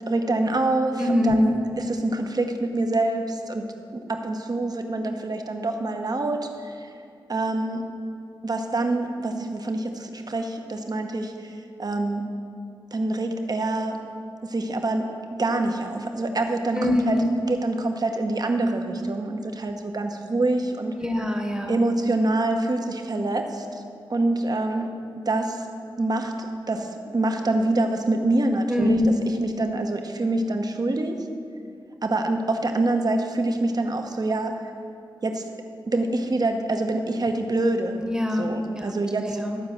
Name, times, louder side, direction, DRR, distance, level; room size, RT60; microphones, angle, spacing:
voice 1, 0.1-3.6 3.9-6.9 7.3-7.8 8.4-12.3 12.9-14.0 14.4-20.9 21.7-23.8 24.1-24.9 25.3-25.6 26.0-26.3 26.7-29.1 29.4-31.2 32.0-34.5 35.2-35.5 35.9-38.0 38.4-39.4, right 2 dB, 45° right, 4 dB, 1.0 m, -26 dB
voice 2, 1.0-1.5 16.7-17.3 21.0-21.8 28.7-29.1 38.0-38.9 39.4-39.6, left 1 dB, 10° right, 3 dB, 1.2 m, -24 dB
12.0 x 4.7 x 7.3 m, 2.5 s
cardioid pair, 50°, 9 cm